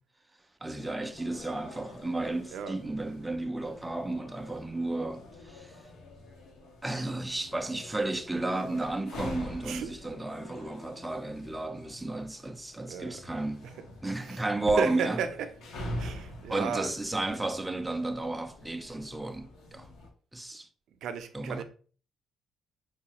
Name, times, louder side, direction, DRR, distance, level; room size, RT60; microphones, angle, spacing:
voice 1, 0.6-5.7 6.8-13.7 14.0-15.2 16.5-19.9 20.3-20.7 21.3-21.6, right 2 dB, 5° right, 0.3 m, -33 dB
sound 1, 0.8-20.1, left 1 dB, 80° left, 1.1 m, -46 dB
voice 2, 14.8-15.3 16.0-16.9 21.0-21.6, right 7 dB, 65° right, 0.5 m, -33 dB
4.5 x 2.4 x 2.9 m
cardioid pair, 160°, 0 cm